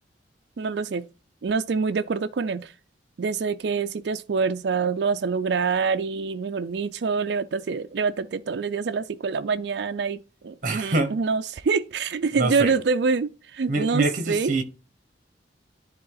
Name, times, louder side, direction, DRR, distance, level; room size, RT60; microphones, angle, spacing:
voice 1, 0.6-1.1 1.4-2.7 3.2-14.5, right 5 dB, 65° right, 0.4 m, -26 dB
voice 2, 10.6-11.2 12.3-12.7 13.7-14.6, right 2 dB, 45° right, 1.2 m, -25 dB
10.5 x 3.7 x 3.9 m
head